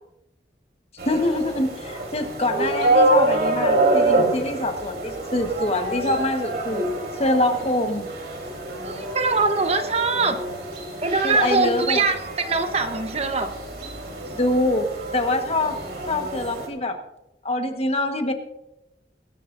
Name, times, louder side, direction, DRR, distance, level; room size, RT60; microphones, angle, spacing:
voice 1, 1.0-6.9 7.2-8.1 11.2-12.0 14.3-14.9 15.1-15.8 16.1-17.0 17.4-18.3, left 1 dB, 35° left, 5 dB, 1.3 m, -24 dB
sound 1, 1.0-16.7, right 2 dB, 60° right, 3.4 m, -26 dB
voice 2, 8.8-10.4 11.0-13.5, right 4 dB, 35° right, 6 dB, 1.1 m, -22 dB
21.0 x 13.0 x 2.6 m, 0.88 s
head